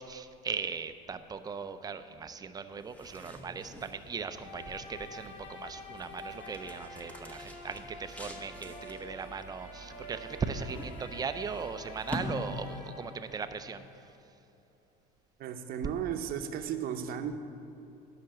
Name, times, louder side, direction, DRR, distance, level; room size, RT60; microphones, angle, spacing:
voice 1, 0.0-13.8, right 5 dB, 20° right, 10 dB, 0.5 m, -38 dB
sound 1, 2.7-13.1, left 1 dB, 10° left, 1.0 m, -45 dB
sound 2, 4.2-14.2, left 1 dB, 85° left, 2.3 m, -48 dB
voice 2, 15.4-17.4, right 8 dB, 55° right, 7 dB, 0.8 m, -35 dB
10.5 x 5.9 x 7.5 m, 2.9 s
cardioid pair, 125°, 18 cm